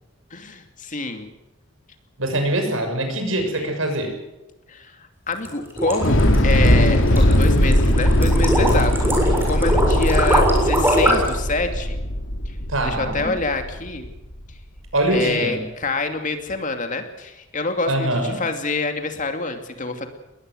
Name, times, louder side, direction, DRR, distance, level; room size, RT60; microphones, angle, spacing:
voice 1, 0.3-1.3 3.6-3.7 4.7-9.1 9.4-12.0 12.5-12.6 12.8-14.1 15.1-20.1, left 3 dB, 40° left, 6 dB, 2.6 m, -26 dB
voice 2, 2.2-4.1 12.7-13.3 14.9-15.6 17.9-18.4, right 1 dB, 90° right, 5 dB, 6.4 m, -23 dB
sound 1, 5.3-11.4, right 1 dB, 10° right, 7.1 m, -21 dB
Thunder / Explosion, 6.0-14.2, left 1 dB, 75° left, 2.9 m, -19 dB
21.0 x 20.0 x 7.9 m, 0.97 s
head